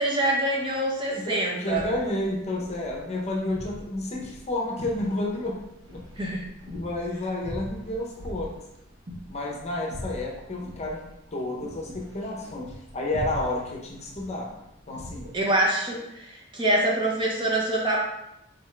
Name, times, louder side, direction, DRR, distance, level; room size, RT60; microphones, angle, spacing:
voice 1, 0.0-1.9 6.2-6.4 15.3-18.0, right 1 dB, 25° right, -2 dB, 0.7 m, -25 dB
voice 2, 1.1-5.6 5.9-6.0 6.6-8.5 9.3-11.0 11.3-14.5 14.9-15.2, left 2 dB, 35° left, -1 dB, 0.7 m, -31 dB
sound 1, 1.6-15.5, equal, 60° right, 1.1 m, -42 dB
3.8 x 3.4 x 3.3 m, 0.84 s
head